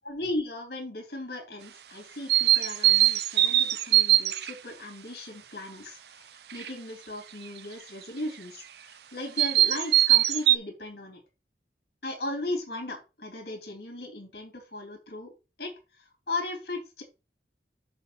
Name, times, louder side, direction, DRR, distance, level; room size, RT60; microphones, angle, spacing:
voice 1, 0.0-11.2 12.0-15.3 15.6-17.0, left 2 dB, 60° left, 3 dB, 2.8 m, -37 dB
sound 1, 2.3-4.5 6.5-6.7 9.4-10.6, right 14 dB, 65° right, 0.6 m, -21 dB
7.2 x 6.1 x 4.1 m, 0.28 s
head